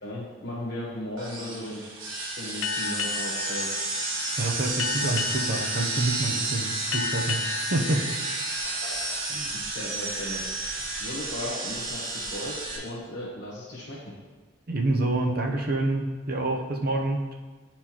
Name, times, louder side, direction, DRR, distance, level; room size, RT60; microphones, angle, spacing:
voice 1, 0.0-1.8 2.4-3.7 8.8-8.9 9.3-12.5 12.8-14.0, left 1 dB, 55° left, -7 dB, 1.1 m, -36 dB
sound 1, 1.2-12.8, right 2 dB, 80° right, 1.4 m, -31 dB
Boat Water vehicle, 2.6-9.7, left 6 dB, 80° left, 0.4 m, -35 dB
voice 2, 4.4-7.4 7.7-8.3 14.7-17.3, right 2 dB, 50° right, 1 dB, 0.7 m, -27 dB
9.7 x 4.4 x 2.9 m, 1.3 s
head